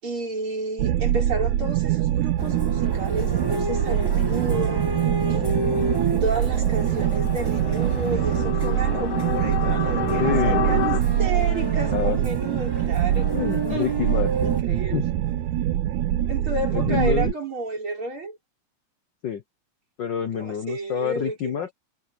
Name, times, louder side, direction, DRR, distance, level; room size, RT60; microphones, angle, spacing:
voice 1, 0.0-4.8 5.3-5.6 6.2-13.3 13.7-14.0 14.4-15.0 16.3-18.4 20.3-21.7, right 3 dB, 40° right, 6.5 m, -31 dB
sound 1, 0.8-17.3, right 12 dB, 80° right, 2.3 m, -24 dB
sound 2, 2.4-14.6, right 1 dB, 20° right, 0.6 m, -31 dB
sound 3, 5.3-11.0, left 11 dB, 60° left, 1.9 m, -31 dB
voice 2, 10.2-10.6 11.9-12.2 13.3-14.5 14.9-15.1 16.7-17.3 19.2-19.4 20.0-21.7, left 9 dB, 85° left, 1.0 m, -27 dB
omnidirectional pair, 3.4 m